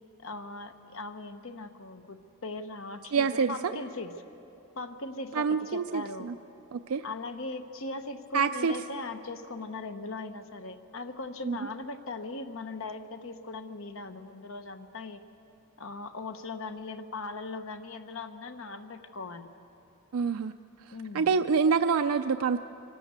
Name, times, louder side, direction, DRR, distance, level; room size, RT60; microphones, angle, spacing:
voice 1, 0.2-4.1 4.8-6.3 7.0-15.2 15.8-19.5 20.9-21.3, left 3 dB, 65° left, 8 dB, 1.0 m, -39 dB
voice 2, 3.1-3.7 5.3-6.3 6.7-7.0 8.3-8.7 11.4-11.6 20.1-20.5 20.9-22.6, right 5 dB, 80° right, 8 dB, 0.4 m, -27 dB
25.0 x 13.0 x 8.1 m, 3.0 s
head